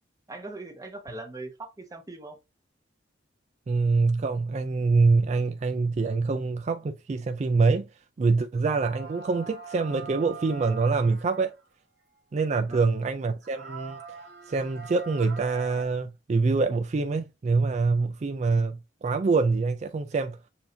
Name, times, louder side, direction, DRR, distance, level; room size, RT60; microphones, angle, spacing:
voice 1, 0.3-2.4 12.7-12.9, right 2 dB, 20° right, 0.8 m, -40 dB
voice 2, 3.7-7.9 8.2-11.6 12.3-14.0 14.5-20.4, right 4 dB, 35° right, 0.3 m, -25 dB
sound 1, 8.6-11.6 12.6-12.7 13.1-13.2 13.4-15.8, right 6 dB, 70° right, 1.1 m, -43 dB
6.9 x 2.6 x 2.7 m
head